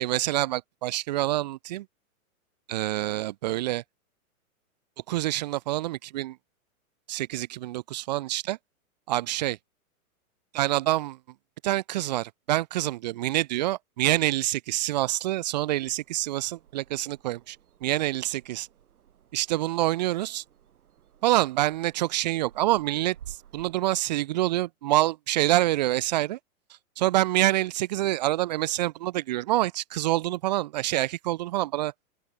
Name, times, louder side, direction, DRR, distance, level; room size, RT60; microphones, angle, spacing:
voice 1, 0.0-1.9 2.7-3.8 5.1-6.4 7.1-8.6 9.1-9.6 10.5-11.2 11.6-17.6 17.8-18.7 19.3-20.4 21.2-26.4 27.0-31.9, right 16 dB, 30° right, 0.8 m, -26 dB
sound 1, 15.5-24.0, right 10 dB, 80° right, 3.5 m, -53 dB
hypercardioid pair, 170°, 44 cm